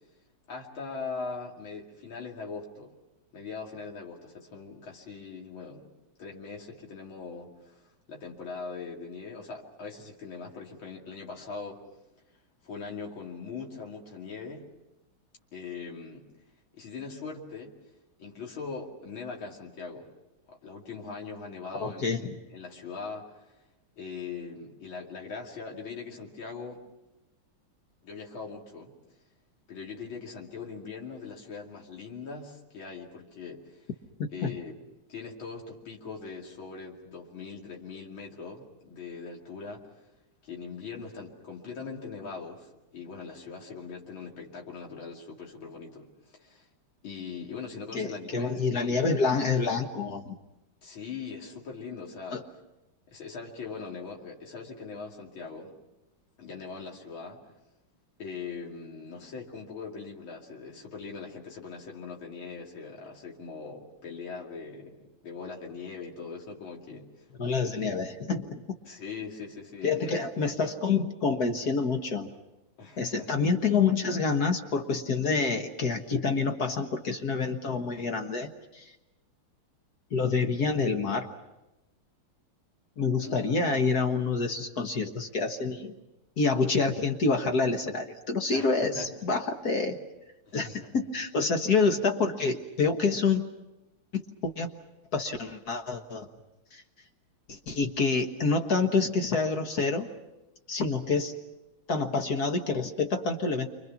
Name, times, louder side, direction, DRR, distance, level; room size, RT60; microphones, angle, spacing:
voice 1, 0.5-2.9 3.3-5.9 6.2-11.8 12.6-14.7 15.5-16.2 16.7-17.7 18.2-20.1 20.5-23.5 24.0-26.8 28.0-28.9 29.7-33.9 34.3-34.7 35.1-39.8 40.4-46.7 47.0-49.0 50.8-52.4 53.1-55.8 56.4-57.4 58.2-67.3 68.8-70.2 70.5-70.6 72.8-73.4 83.2-83.8 88.5-89.1 89.8-89.9 90.5-91.0, left 5 dB, 65° left, -1 dB, 3.3 m, -41 dB
voice 2, 21.8-22.4 34.4-34.5 47.9-50.4 52.3-52.4 67.4-68.6 69.8-72.3 73.0-78.9 80.1-81.3 83.0-85.9 86.4-90.0 90.5-93.4 94.1-94.7 95.1-96.3 96.7-96.8 97.5-100.1 100.7-101.3 101.9-103.7, left 4 dB, 50° left, 5 dB, 1.7 m, -27 dB
29.0 x 25.0 x 6.0 m, 0.97 s
omnidirectional pair, 2.4 m